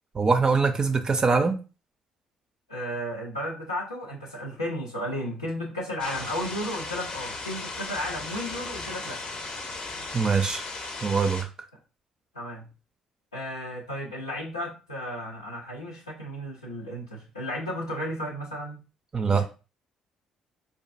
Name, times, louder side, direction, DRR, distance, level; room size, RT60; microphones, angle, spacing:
voice 1, 0.1-1.6 10.1-10.7 11.0-11.5 19.1-19.4, right 4 dB, 30° right, 7 dB, 0.4 m, -23 dB
voice 2, 2.7-9.2 12.3-12.7 13.3-18.8 19.3-19.4, equal, 85° left, -5 dB, 0.5 m, -34 dB
sound 1, 6.0-11.4, left 3 dB, 40° left, 0.6 m, -36 dB
4.5 x 2.4 x 2.4 m, 0.32 s
figure-of-eight pair, 45°, 2 cm